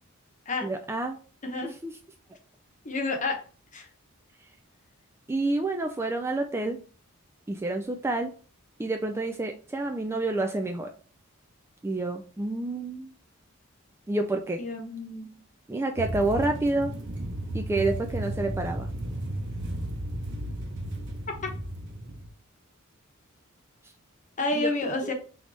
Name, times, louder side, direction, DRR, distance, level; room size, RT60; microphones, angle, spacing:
voice 1, 0.6-1.2 1.6-1.9 5.3-6.8 7.5-8.3 8.8-10.9 11.8-13.1 14.1-14.6 15.7-16.9 17.5-18.9 24.6-24.7, right 2 dB, 10° right, 4 dB, 0.3 m, -28 dB
voice 2, 1.4-1.7 2.8-3.4 3.7-3.9 14.6-15.3 24.4-25.1, left 2 dB, 35° left, 3 dB, 1.0 m, -29 dB
sound 1, 16.0-22.3, right 1 dB, 55° right, 1.0 m, -34 dB
3.9 x 3.4 x 3.2 m, 0.39 s
head